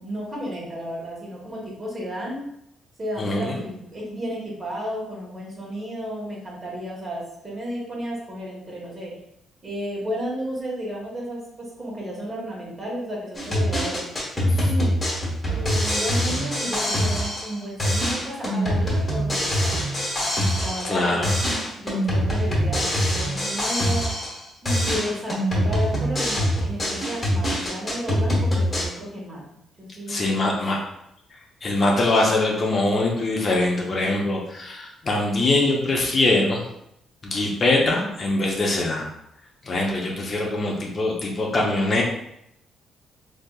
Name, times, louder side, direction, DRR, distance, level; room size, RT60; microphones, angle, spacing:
voice 1, 0.0-2.4 3.0-9.1 9.6-14.1 14.6-15.0 15.4-20.0 20.6-21.2 21.7-24.1 24.6-29.4 29.8-30.5, equal, 30° right, -4 dB, 1.3 m, -33 dB
voice 2, 3.2-3.6 14.5-14.7 20.8-21.3 30.1-30.8 31.6-36.6 37.2-39.1 39.6-42.0, left 2 dB, 40° left, -1 dB, 0.7 m, -23 dB
sound 1, 13.3-17.5 17.8-21.0 21.2-24.4 24.6-28.9, equal, 20° left, 1.2 m, -24 dB
3.3 x 2.7 x 2.3 m, 0.77 s
cardioid pair, 90°, 0 cm